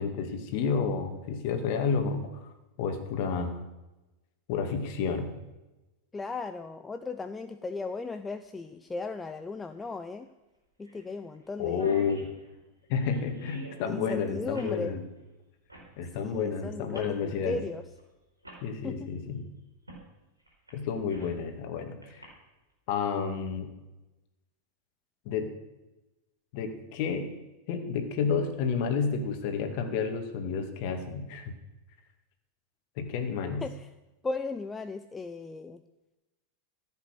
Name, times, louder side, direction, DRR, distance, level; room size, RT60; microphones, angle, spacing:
voice 1, 0.0-2.5 2.8-3.6 4.5-5.3 11.6-12.3 12.9-15.0 16.0-17.6 18.6-19.5 20.7-22.3 22.9-23.7 25.3-25.5 26.5-27.3 27.7-31.5 33.0-33.6, left 6 dB, 45° left, 6 dB, 2.1 m, -30 dB
voice 2, 6.1-10.3 10.8-11.9 13.9-14.9 16.2-17.8 18.8-19.1 33.6-33.9 34.2-35.8, left 3 dB, 15° left, 8 dB, 0.6 m, -36 dB
sound 1, 7.9-8.0 9.8-9.9 10.2-10.3 10.8-11.1 11.3-11.4 11.6-13.8 14.5-14.8 15.7-15.9 16.9-17.2 18.0-18.1 18.4-18.6 19.9-20.0 20.5-21.4 22.0-22.2, right 1 dB, 80° right, 4.4 m, -47 dB
15.0 x 8.2 x 6.5 m, 1.0 s
figure-of-eight pair, 90°, 0 cm